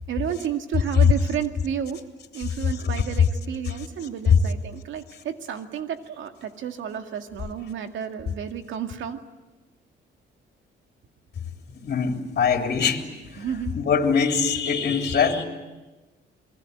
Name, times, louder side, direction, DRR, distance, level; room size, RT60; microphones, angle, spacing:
voice 1, 0.1-2.0 2.3-9.2 13.4-13.7, right 8 dB, 75° right, 6 dB, 2.2 m, -31 dB
voice 2, 11.8-13.0 13.3-13.4 13.7-15.4, left 6 dB, 55° left, 4 dB, 3.4 m, -23 dB
28.0 x 21.0 x 9.4 m, 1.2 s
cardioid pair, 90°, 20 cm